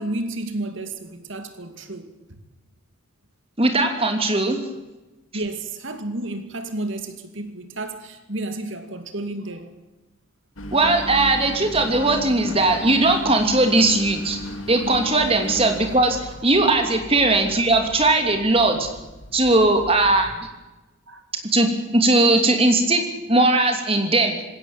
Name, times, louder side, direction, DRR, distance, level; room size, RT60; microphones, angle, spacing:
voice 1, 0.0-2.4 5.3-9.7 21.1-21.2, right 2 dB, 60° right, 2.4 m, -31 dB
voice 2, 3.6-4.6 10.7-14.4 14.7-18.9 19.3-20.5 21.5-24.3, right 2 dB, 25° right, 2.9 m, -19 dB
Engine, 10.6-20.3, left 1 dB, 65° left, 2.3 m, -36 dB
20.5 x 17.0 x 9.0 m
head